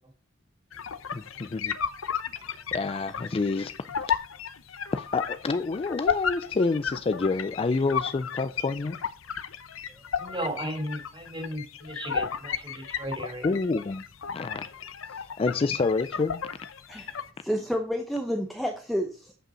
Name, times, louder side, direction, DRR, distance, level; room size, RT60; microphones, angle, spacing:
sound 1, 0.7-17.3, left 7 dB, 80° left, 0.7 m, -34 dB
voice 1, 1.1-1.8 2.7-3.7 4.9-9.0 13.4-14.0 14.3-14.7 15.4-16.4, left 3 dB, 30° left, 0.3 m, -28 dB
voice 2, 10.2-13.5, right 1 dB, 25° right, 3.2 m, -35 dB
voice 3, 17.4-19.3, equal, ahead, 0.8 m, -30 dB
8.7 x 5.3 x 5.1 m
head